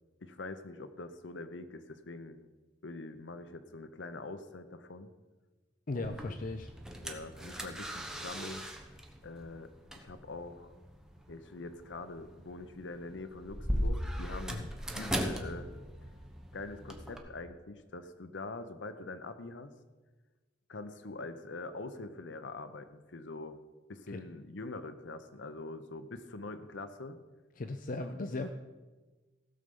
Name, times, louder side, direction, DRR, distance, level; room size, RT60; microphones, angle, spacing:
voice 1, 0.2-2.4 2.8-5.1 5.9-6.4 7.0-8.6 9.2-10.7 11.3-15.7 16.5-19.8 20.7-23.6 23.9-27.2, left 2 dB, 75° left, 11 dB, 0.8 m, -44 dB
voice 2, 5.9-6.7 14.5-14.7 24.1-24.2 27.6-28.5, left 2 dB, 45° left, 7 dB, 0.5 m, -37 dB
sound 1, 6.0-17.2, equal, 5° right, 1.0 m, -39 dB
16.0 x 6.7 x 5.4 m, 1.3 s
head